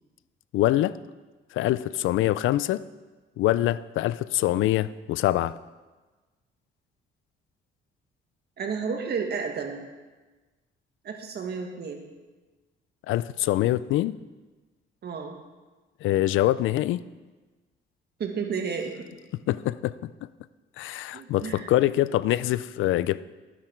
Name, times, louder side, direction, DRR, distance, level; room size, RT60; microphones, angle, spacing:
voice 1, 0.5-0.9 1.5-2.8 3.4-5.5 13.1-14.2 16.0-17.0 19.5-20.1 20.8-23.2, left 14 dB, 80° left, 17 dB, 0.4 m, -24 dB
voice 2, 8.6-9.8 11.0-12.0 15.0-15.3 18.2-19.1 21.1-21.7, right 5 dB, 55° right, 3 dB, 1.8 m, -32 dB
12.0 x 10.5 x 4.5 m, 1.3 s
cardioid pair, 90°, 20 cm